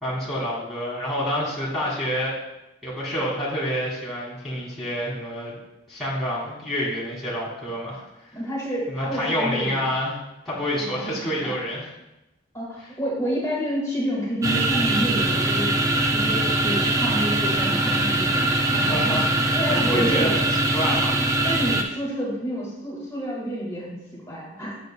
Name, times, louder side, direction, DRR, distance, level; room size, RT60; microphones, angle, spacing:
voice 1, 0.0-2.4 2.8-5.6 5.9-8.0 8.9-10.2 10.4-11.9 12.8-12.9 18.7-21.2, equal, ahead, -9 dB, 1.5 m, -28 dB
voice 2, 8.3-9.9 10.7-11.0 11.4-11.6 12.5-18.7 19.5-20.4 21.4-24.8, equal, 15° left, -5 dB, 1.6 m, -29 dB
sound 1, 14.4-21.8, right 2 dB, 15° right, 0.3 m, -22 dB
7.8 x 6.2 x 2.2 m, 0.95 s
head